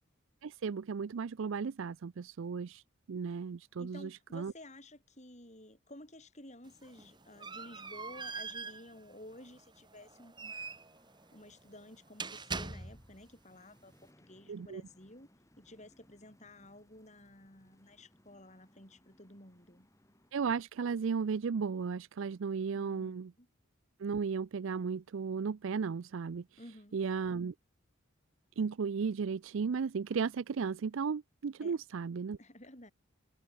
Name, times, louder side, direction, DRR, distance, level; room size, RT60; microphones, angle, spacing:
voice 1, 0.4-2.8 3.1-4.5 14.5-14.8 20.3-23.3 24.0-26.4 26.9-27.5 28.6-32.4, right 5 dB, 70° right, 0.4 m, -35 dB
voice 2, 3.8-10.8 11.3-15.3 15.6-19.9 22.7-23.5 26.6-27.0 31.6-31.8 32.3-32.9, left 1 dB, 35° left, 7.8 m, -53 dB
sound 1, 6.6-13.3, right 4 dB, 20° right, 4.0 m, -44 dB
sound 2, 10.4-20.3, equal, 15° left, 6.1 m, -67 dB
head